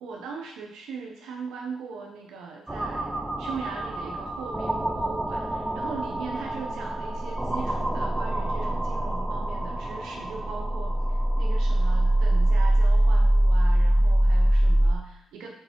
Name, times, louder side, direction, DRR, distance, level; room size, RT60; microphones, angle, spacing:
voice 1, 0.0-15.5, right 5 dB, 90° right, 0 dB, 0.9 m, -39 dB
sound 1, 2.7-14.9, right 1 dB, 10° right, 0.6 m, -24 dB
7.8 x 3.3 x 4.5 m, 0.78 s
cardioid pair, 90°, 0 cm